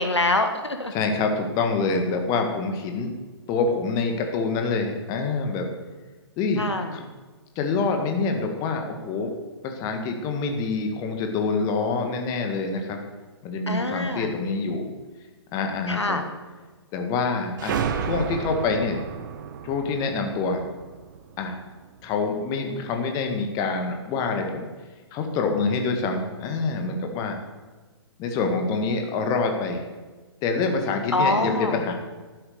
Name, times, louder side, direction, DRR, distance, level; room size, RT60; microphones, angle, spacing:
voice 1, 0.0-0.9 6.6-7.0 13.7-14.3 15.9-16.2 31.1-31.8, left 2 dB, 80° left, 6 dB, 1.5 m, -25 dB
voice 2, 0.9-3.1 3.5-5.7 6.4-6.6 6.9-7.1 7.6-9.3 9.6-13.0 13.4-14.9 15.5-16.2 16.9-17.8 18.1-19.0 19.6-20.6 21.4-21.6 22.0-24.7 25.1-27.4 28.2-29.8 30.4-31.9, left 4 dB, 25° left, 4 dB, 1.8 m, -26 dB
sound 1, 17.6-22.0, right 7 dB, 45° right, 1.1 m, -32 dB
12.0 x 9.8 x 6.9 m, 1.3 s
figure-of-eight pair, 120°, 14 cm